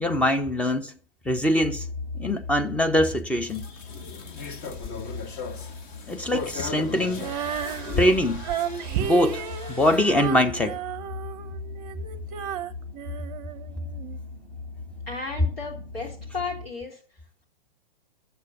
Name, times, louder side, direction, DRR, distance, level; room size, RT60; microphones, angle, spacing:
voice 1, 0.0-0.9 1.3-1.9 2.2-3.6 6.1-7.3 8.0-8.5 9.0-10.8, left 1 dB, 5° left, 0.5 m, -23 dB
sound 1, 1.6-16.7, left 4 dB, 50° left, 6.2 m, -40 dB
sound 2, 3.5-10.1, left 4 dB, 30° left, 1.2 m, -36 dB
Female singing, 7.1-14.2, right 9 dB, 40° right, 0.6 m, -33 dB
voice 2, 15.1-17.0, left 4 dB, 75° left, 3.7 m, -34 dB
7.9 x 6.5 x 6.8 m
figure-of-eight pair, 110°, 29 cm